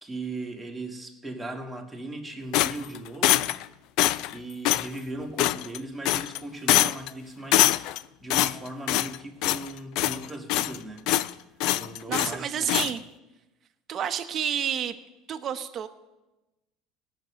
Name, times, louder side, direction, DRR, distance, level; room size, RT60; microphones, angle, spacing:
voice 1, 0.0-3.5 4.3-7.8 8.2-11.1 11.7-12.9, right 2 dB, 5° right, 1 dB, 1.6 m, -38 dB
sound 1, 2.5-3.6 4.0-4.3 4.6-4.9 5.4-5.8 6.0-6.4 6.7-7.1 7.5-8.0 8.3-9.2 9.4-9.7 10.0-10.8 11.1-11.3 11.6-12.4 12.7-12.9, left 15 dB, 60° left, 0.4 m, -23 dB
voice 2, 12.1-13.0 13.9-15.0 15.3-15.9, right 9 dB, 35° right, 8 dB, 0.9 m, -29 dB
18.0 x 6.2 x 7.0 m, 1.0 s
cardioid pair, 135°, 0 cm